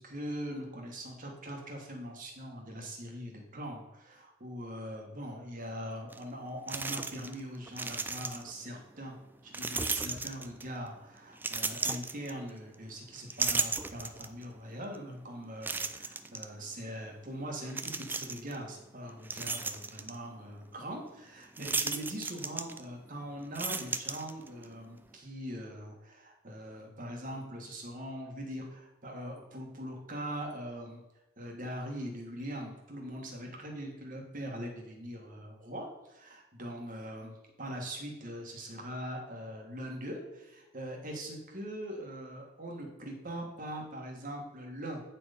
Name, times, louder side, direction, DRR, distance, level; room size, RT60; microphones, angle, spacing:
voice 1, 0.0-9.2 9.4-31.0 31.4-45.0, equal, 45° right, 1 dB, 1.7 m, -42 dB
sound 1, 6.1-6.2 6.7-7.4 7.7-8.6 9.5-10.8 11.4-12.8 13.2-14.4 14.9-15.0 15.6-16.5 17.7-18.6 19.0-20.2 21.6-23.1 23.4-24.7, right 4 dB, 10° right, 0.3 m, -35 dB
9.2 x 4.5 x 5.1 m, 1.0 s
head